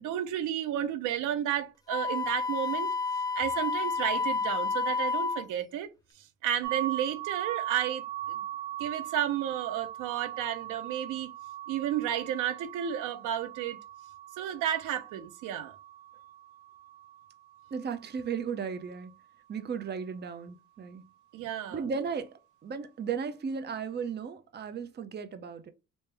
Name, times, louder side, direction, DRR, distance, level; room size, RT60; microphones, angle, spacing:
voice 1, 0.0-2.9 3.4-5.9 6.2-8.0 8.8-11.3 11.7-13.8 14.4-15.8 21.3-21.8, right 10 dB, 90° right, 0.6 m, -32 dB
Wind instrument woodwind instrument, 1.9-5.4, left 4 dB, 15° left, 0.5 m, -30 dB
sound 1, 6.6-18.4, right 13 dB, 70° right, 1.1 m, -40 dB
voice 2, 17.7-19.1 19.5-21.1 21.7-25.7, right 6 dB, 35° right, 0.6 m, -35 dB
3.4 x 2.7 x 3.3 m
cardioid pair, 90°, 30 cm